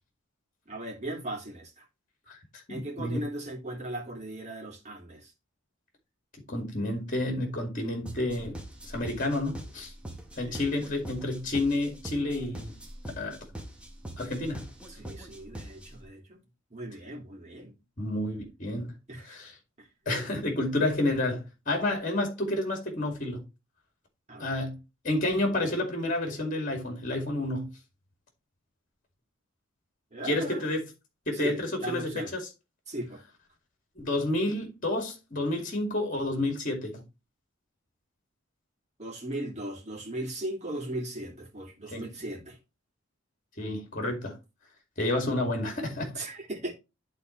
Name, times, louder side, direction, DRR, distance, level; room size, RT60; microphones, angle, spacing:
voice 1, 0.7-1.8 2.7-5.3 10.4-10.9 14.9-16.4 16.7-17.7 19.1-19.4 19.8-19.9 24.3-24.5 30.1-30.6 31.3-32.3 32.9-33.2 39.0-42.6 46.2-46.7, right 1 dB, 35° right, 2.6 m, -38 dB
voice 2, 2.7-3.2 6.5-8.6 8.8-9.9 10.4-12.8 13.2-13.4 14.2-14.6 18.0-18.9 19.2-19.6 20.1-23.4 24.4-24.8 25.0-27.7 30.2-30.8 31.3-32.5 34.0-37.0 41.9-42.1 43.6-44.3 45.0-46.1, left 1 dB, 40° left, 2.2 m, -30 dB
sound 1, 8.1-16.1, right 1 dB, 5° right, 1.2 m, -43 dB
11.5 x 4.0 x 3.2 m
head